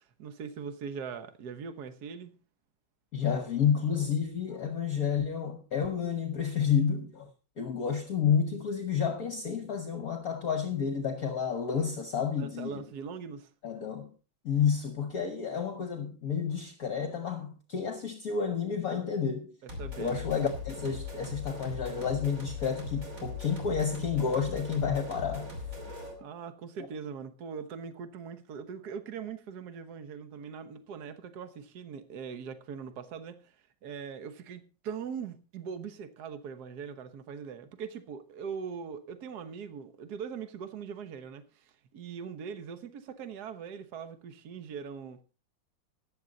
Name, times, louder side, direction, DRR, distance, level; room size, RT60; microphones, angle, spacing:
voice 1, 0.0-2.4 12.4-13.5 19.6-20.2 26.2-33.5 33.8-45.2, right 6 dB, 55° right, 1.5 m, -41 dB
voice 2, 3.1-7.3 7.6-12.8 13.6-14.1 14.4-19.5 20.0-25.5, left 7 dB, 55° left, 1.3 m, -30 dB
sound 1, 19.7-26.2, left 3 dB, 40° right, 3.4 m, -40 dB
14.0 x 10.0 x 4.0 m
omnidirectional pair, 2.2 m